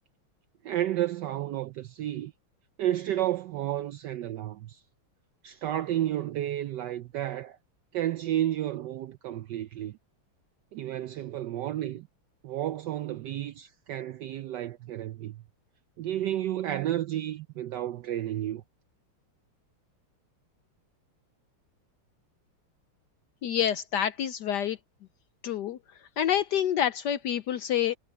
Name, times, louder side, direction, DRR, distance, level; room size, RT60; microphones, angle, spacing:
voice 1, 0.6-2.3 2.8-4.8 5.4-7.6 7.9-10.0 10.7-12.1 12.4-15.4 16.0-18.6, right 12 dB, 75° right, 1.0 m, -31 dB
voice 2, 23.4-24.8 25.4-25.8 26.2-28.0, left 10 dB, 70° left, 1.0 m, -27 dB
omnidirectional pair, 2.3 m